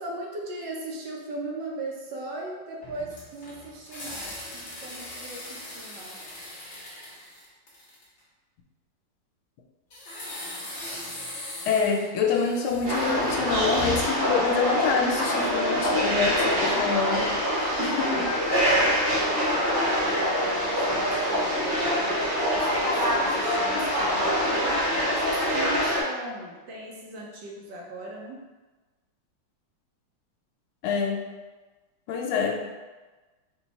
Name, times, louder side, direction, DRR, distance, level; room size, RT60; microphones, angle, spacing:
voice 1, 0.0-6.2 17.5-22.2 22.5-28.4, right 2 dB, 70° right, -2 dB, 1.3 m, -38 dB
sound 1, 2.8-8.2 9.9-14.3, left 2 dB, 45° left, 1.0 m, -39 dB
voice 2, 11.7-17.3 17.8-18.2 30.8-31.2 32.1-32.6, left 5 dB, 80° left, 2 dB, 1.4 m, -26 dB
sound 2, 12.8-26.0, equal, 85° right, 2.2 m, -25 dB
4.4 x 2.3 x 4.0 m, 1.2 s
omnidirectional pair, 2.3 m